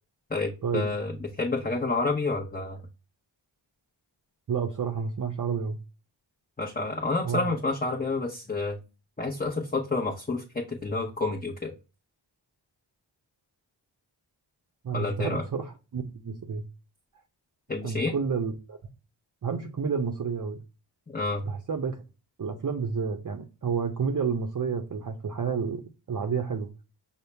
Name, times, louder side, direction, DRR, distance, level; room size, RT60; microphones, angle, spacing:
voice 1, 0.3-2.8 6.6-8.8 9.2-11.7 14.9-15.4 17.7-18.1 21.1-21.5, left 3 dB, 20° left, 0.9 m, -29 dB
voice 2, 4.5-5.8 7.2-7.6 14.8-16.7 17.8-18.8 19.4-20.6 21.5-22.0 22.4-25.8 26.1-26.7, right 6 dB, 40° right, 0.6 m, -30 dB
5.4 x 2.1 x 3.2 m
cardioid pair, 45°, 47 cm